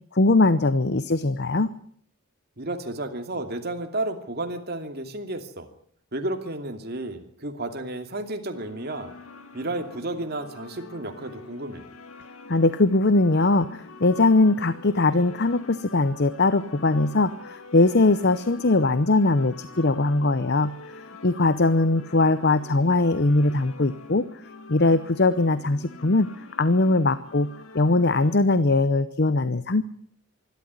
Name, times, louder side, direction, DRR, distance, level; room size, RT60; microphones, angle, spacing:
voice 1, 0.1-1.7 12.5-20.7 21.2-24.3 24.7-26.3 26.6-27.5 27.7-29.8, left 2 dB, 50° left, 14 dB, 0.8 m, -21 dB
voice 2, 2.6-5.7 6.1-9.1 9.5-11.8, right 2 dB, 45° right, 6 dB, 2.7 m, -32 dB
sound 1, 8.5-28.4, left 3 dB, 70° left, 2.6 m, -45 dB
24.5 x 13.0 x 9.7 m, 0.63 s
head